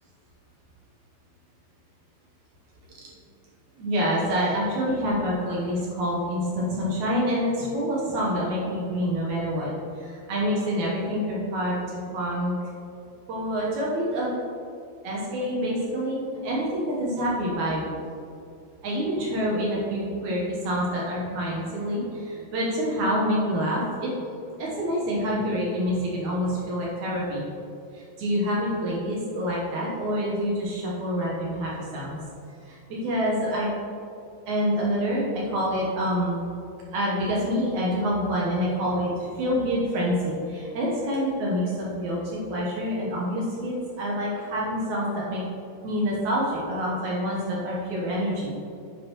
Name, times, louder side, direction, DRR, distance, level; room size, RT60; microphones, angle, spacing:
voice 1, 3.8-12.5 13.3-14.3 15.0-17.9 18.8-24.1 24.6-27.4 27.9-32.2 32.6-33.7 34.5-36.4 36.9-45.4 45.8-48.5, equal, 70° right, -5 dB, 1.9 m, -27 dB
9.7 x 5.2 x 3.0 m, 2.6 s
omnidirectional pair, 4.6 m